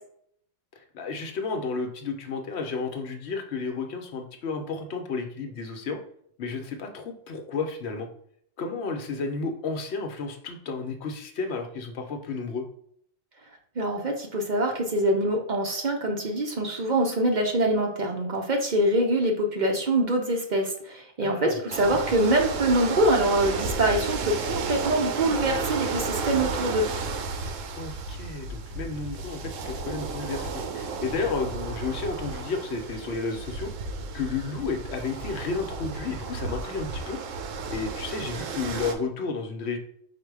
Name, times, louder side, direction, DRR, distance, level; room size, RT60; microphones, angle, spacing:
voice 1, 0.8-6.0 6.4-8.1 8.6-12.7 21.2-21.6 21.8-22.1 27.7-33.7 34.1-37.2 37.7-39.8, left 4 dB, 60° left, 4 dB, 0.9 m, -32 dB
voice 2, 13.8-26.9, right 1 dB, 50° right, 1 dB, 0.6 m, -24 dB
sound 1, 21.7-38.9, right 4 dB, 75° right, 1.0 m, -33 dB
4.9 x 2.2 x 4.6 m, 0.67 s
omnidirectional pair, 1.4 m